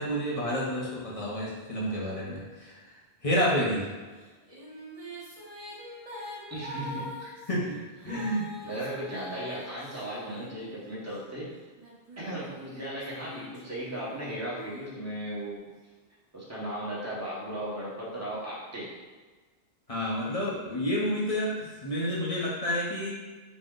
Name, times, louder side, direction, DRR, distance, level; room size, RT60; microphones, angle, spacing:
voice 1, 0.0-3.0 3.2-3.9 7.5-7.8 8.0-8.5 19.9-23.1, equal, 40° left, -5 dB, 0.7 m, -29 dB
Female singing, 4.2-11.1 11.8-15.5, left 1 dB, 35° right, 1.0 m, -44 dB
voice 2, 6.5-7.4 8.0-8.4 8.6-11.5 12.2-15.6 16.3-18.9, right 1 dB, 15° right, -8 dB, 1.0 m, -36 dB
4.1 x 2.1 x 3.7 m, 1.3 s
omnidirectional pair, 1.1 m